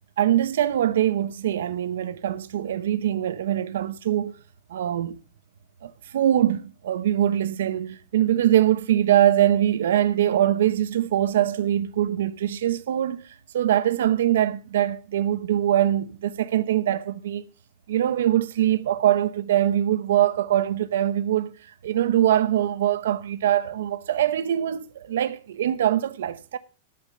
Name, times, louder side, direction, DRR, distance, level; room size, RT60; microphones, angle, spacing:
voice 1, 0.2-4.4 4.7-5.2 5.8-17.4 17.9-21.5 21.8-26.6, right 11 dB, 85° right, 0.8 m, -23 dB
13.5 x 6.8 x 6.4 m
supercardioid pair, 180°, 0 cm